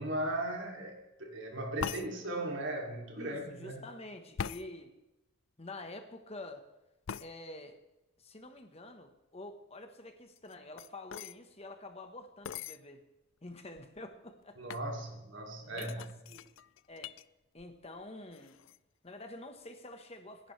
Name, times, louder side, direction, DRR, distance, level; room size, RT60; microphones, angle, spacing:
voice 1, 0.0-3.8 14.6-16.0, right 1 dB, 60° right, 1 dB, 2.9 m, -37 dB
sound 1, 1.8-2.1 4.4-4.7 7.1-7.3 10.4-11.4 12.4-12.8 13.5-13.6 13.8-14.1 14.7-14.9 15.8-17.2 17.6-18.0 18.3-18.8, left 7 dB, 65° left, 0.4 m, -41 dB
voice 2, 3.2-4.9 5.6-6.6 7.2-7.8 8.2-13.0 13.4-14.6 15.6-16.5 16.9-17.1 17.5-18.6 19.0-20.5, left 2 dB, 30° left, 6 dB, 1.3 m, -48 dB
26.5 x 11.0 x 3.4 m, 0.96 s
head